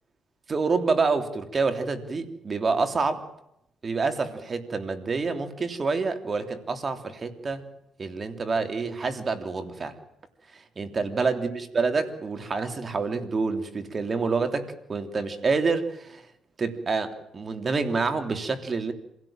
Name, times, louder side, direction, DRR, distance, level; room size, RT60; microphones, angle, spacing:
voice 1, 0.5-3.3 3.8-7.6 8.0-9.9 10.5-16.2 16.6-18.9, right 4 dB, 35° right, 8 dB, 3.2 m, -27 dB
26.5 x 17.0 x 8.9 m, 0.82 s
cardioid pair, 90°, 0 cm